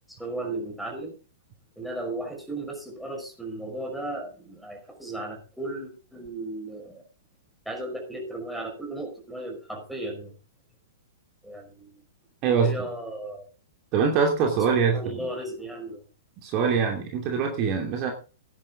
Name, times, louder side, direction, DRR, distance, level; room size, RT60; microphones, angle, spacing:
voice 1, 0.1-1.2 1.8-7.0 7.7-10.3 11.4-12.0 12.5-13.5 14.9-16.0, right 1 dB, ahead, 1 dB, 5.5 m, -35 dB
voice 2, 13.9-15.2 16.4-18.1, right 6 dB, 35° right, 2 dB, 2.9 m, -23 dB
17.0 x 10.5 x 3.8 m, 0.33 s
figure-of-eight pair, 105°, 0 cm